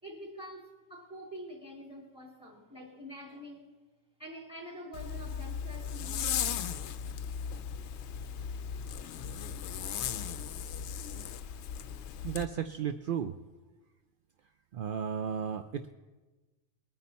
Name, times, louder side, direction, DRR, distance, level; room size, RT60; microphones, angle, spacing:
voice 1, 0.0-3.7 4.2-6.9, equal, 5° right, -1 dB, 2.7 m, -46 dB
Zipper (clothing), 4.9-12.5, left 8 dB, 65° left, 0.8 m, -37 dB
voice 2, 12.2-13.4 14.7-15.9, right 8 dB, 65° right, 8 dB, 0.5 m, -34 dB
21.5 x 9.5 x 4.2 m, 1.2 s
omnidirectional pair, 1.4 m